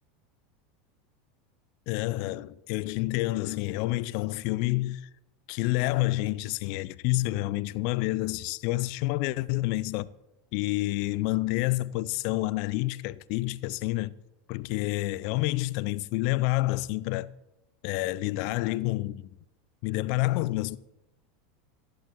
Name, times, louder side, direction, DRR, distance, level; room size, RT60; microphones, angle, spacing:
voice 1, 1.9-5.1 5.5-10.1 10.5-14.1 14.5-17.3 17.8-19.3 19.8-20.8, left 19 dB, 60° left, 0.5 m, -28 dB
26.5 x 10.5 x 3.1 m
hypercardioid pair, 80°, 0 cm